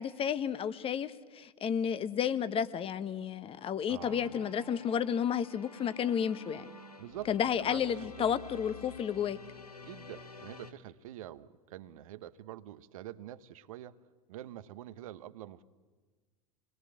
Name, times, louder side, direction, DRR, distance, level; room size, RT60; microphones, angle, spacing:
voice 1, 0.0-6.7 7.3-9.4, left 8 dB, 30° left, 13 dB, 1.2 m, -32 dB
voice 2, 3.9-4.3 7.0-7.3 7.6-8.3 9.8-13.9 14.3-15.6, right 13 dB, 65° right, 14 dB, 1.1 m, -46 dB
sound 1, 4.0-10.7, left 3 dB, 90° left, 1.4 m, -49 dB
28.5 x 20.5 x 7.5 m, 1.4 s
figure-of-eight pair, 85°, 19 cm